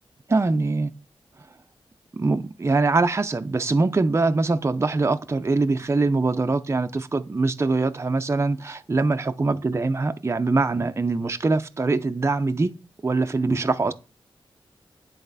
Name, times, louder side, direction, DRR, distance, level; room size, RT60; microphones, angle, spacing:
voice 1, 0.3-0.9 2.1-12.7 13.0-13.9, right 3 dB, 30° right, 0.6 m, -23 dB
10.5 x 4.2 x 4.1 m
wide cardioid pair, 85°, 10 cm